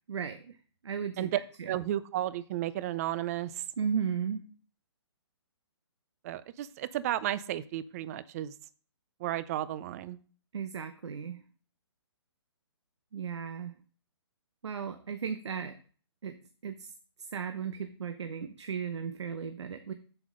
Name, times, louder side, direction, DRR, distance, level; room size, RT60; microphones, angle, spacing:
voice 1, 0.1-0.6 0.8-1.8 3.8-4.5 10.5-11.4 13.1-13.7 14.6-15.8 16.2-16.4 16.6-16.9 17.3-19.9, right 7 dB, 75° right, 9 dB, 0.8 m, -35 dB
voice 2, 1.7-3.5 6.2-8.5 9.2-10.2, right 13 dB, 35° right, 17 dB, 0.5 m, -33 dB
7.7 x 7.5 x 3.8 m, 0.41 s
hypercardioid pair, 145°, 15 cm